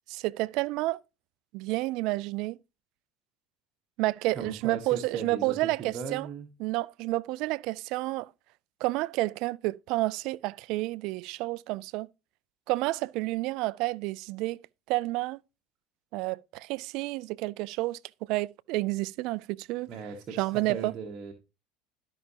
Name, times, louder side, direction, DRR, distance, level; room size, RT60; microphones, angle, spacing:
voice 1, 0.1-1.0 1.5-2.6 4.0-6.3 6.6-8.3 8.8-12.1 12.7-14.6 14.9-15.4 16.1-18.0 18.3-19.9 20.3-20.9, right 20 dB, 65° right, 0.3 m, -30 dB
voice 2, 4.3-6.5 19.9-21.3, right 5 dB, 45° right, 1.3 m, -38 dB
12.5 x 5.7 x 2.8 m
supercardioid pair, 105°, 0 cm